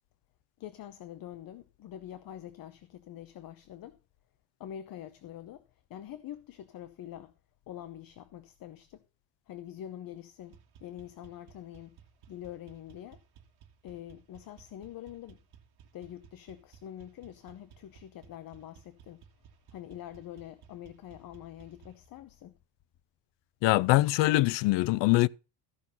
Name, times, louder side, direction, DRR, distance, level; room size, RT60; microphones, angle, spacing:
voice 1, 0.6-4.0 4.6-7.3 7.7-9.0 9.5-12.0 12.3-13.2 13.8-15.4 15.9-19.2 19.7-22.5, left 11 dB, 45° left, 0.9 m, -45 dB
sound 1, 10.4-22.1, right 8 dB, 50° right, 1.9 m, -58 dB
voice 2, 23.6-25.3, left 19 dB, 65° left, 0.5 m, -23 dB
14.0 x 6.0 x 5.5 m
cardioid pair, 135°, 48 cm